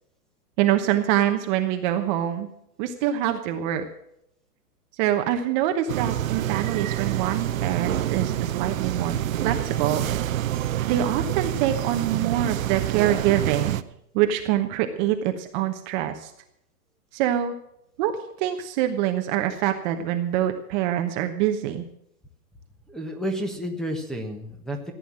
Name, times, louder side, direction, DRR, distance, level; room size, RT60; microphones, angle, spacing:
voice 1, 0.6-2.5 2.8-3.8 5.0-9.2 9.4-10.0 10.9-13.8 14.1-16.3 17.1-17.5 18.0-18.1 18.4-21.8, right 11 dB, 30° right, 6 dB, 1.1 m, -25 dB
sound 1, 5.9-13.8, right 12 dB, 55° right, 0.9 m, -27 dB
voice 2, 22.9-24.9, equal, ahead, -1 dB, 1.3 m, -31 dB
15.5 x 9.4 x 7.6 m, 0.77 s
hypercardioid pair, 135°, 47 cm